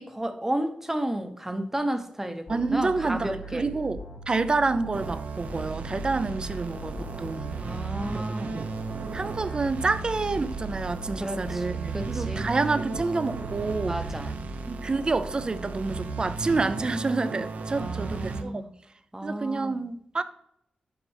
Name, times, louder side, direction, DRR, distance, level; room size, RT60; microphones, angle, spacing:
voice 1, 0.0-3.7 7.6-8.7 11.2-12.5 13.8-14.3 17.8-18.7 19.1-19.8, right 1 dB, 15° right, 0.8 m, -32 dB
sound 1, 2.5-14.7, right 3 dB, 85° left, 3.0 m, -41 dB
voice 2, 2.5-7.6 8.1-8.7 9.1-14.0 14.7-18.6 19.2-20.2, right 3 dB, 35° right, 0.5 m, -28 dB
sound 2, 4.9-18.4, right 4 dB, 75° right, 0.9 m, -35 dB
7.0 x 5.9 x 3.4 m
wide cardioid pair, 110°, 3 cm